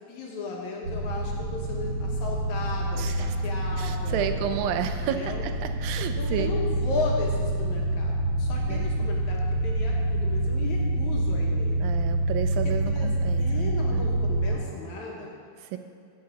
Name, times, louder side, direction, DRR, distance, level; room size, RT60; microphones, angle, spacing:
voice 1, 0.1-5.4 6.2-11.8 12.5-15.3, left 3 dB, 70° left, -2 dB, 2.1 m, -36 dB
sound 1, 0.8-14.6, right 1 dB, 40° right, 2.9 m, -27 dB
voice 2, 3.0-3.3 3.8-6.6 8.7-8.9 11.8-14.1 15.7-15.8, right 9 dB, 85° right, 8 dB, 2.4 m, -31 dB
7.0 x 6.6 x 6.9 m, 2.4 s
omnidirectional pair, 4.0 m